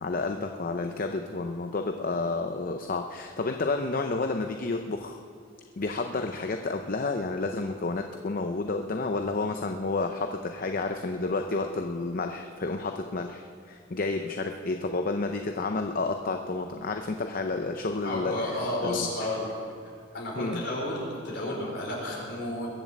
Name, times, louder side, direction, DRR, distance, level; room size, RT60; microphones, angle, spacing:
voice 1, 0.0-5.2 5.8-19.1 20.3-20.6, left 3 dB, 45° left, 5 dB, 0.6 m, -30 dB
voice 2, 18.0-19.5 20.1-22.7, left 1 dB, 60° left, -3 dB, 4.5 m, -31 dB
22.0 x 7.4 x 7.2 m, 2.2 s
head